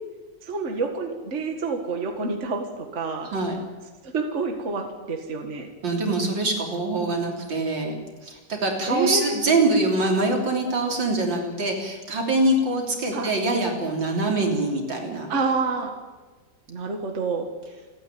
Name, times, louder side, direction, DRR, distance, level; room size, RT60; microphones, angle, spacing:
voice 1, 0.4-3.3 4.0-5.7 8.9-9.5 13.1-13.3 15.3-15.9 16.7-17.5, right 4 dB, 40° right, 4 dB, 2.0 m, -28 dB
voice 2, 5.8-8.0 8.2-15.3, right 2 dB, 75° right, 1 dB, 4.2 m, -24 dB
28.5 x 9.9 x 9.2 m, 1.3 s
omnidirectional pair, 2.0 m